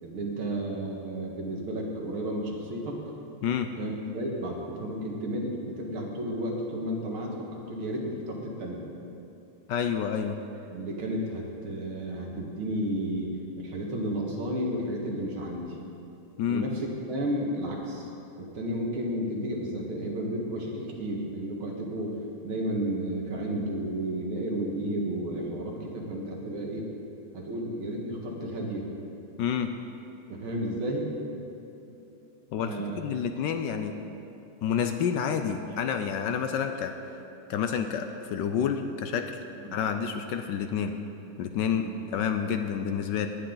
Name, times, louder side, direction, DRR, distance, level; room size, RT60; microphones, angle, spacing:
voice 1, 0.0-3.0 3.8-8.8 10.7-13.3 13.6-15.8 16.5-18.1 18.4-22.2 22.4-26.9 27.3-28.9 30.3-31.1 32.6-33.0 39.7-39.8 41.7-41.9, right 1 dB, 80° right, -1 dB, 2.5 m, -32 dB
voice 2, 9.7-10.4 16.4-16.6 29.4-29.7 32.5-33.9 34.6-36.9 37.5-39.3 39.7-40.9 41.4-43.3, left 7 dB, 70° left, 7 dB, 1.1 m, -29 dB
17.5 x 9.1 x 3.9 m, 3.0 s
omnidirectional pair, 2.2 m